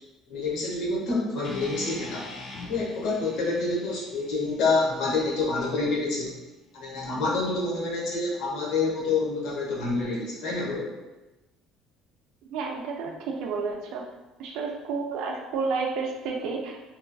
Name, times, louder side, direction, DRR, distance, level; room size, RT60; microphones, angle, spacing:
voice 1, 0.3-2.3 2.7-6.3 6.7-10.9, left 3 dB, 70° left, -4 dB, 0.9 m, -27 dB
sound 1, 1.4-5.6, left 2 dB, 45° left, 0.4 m, -43 dB
voice 2, 12.5-14.0 14.4-16.8, right 4 dB, 75° right, 0 dB, 0.4 m, -31 dB
2.9 x 2.5 x 2.2 m, 1.1 s
cardioid pair, 130°, 0 cm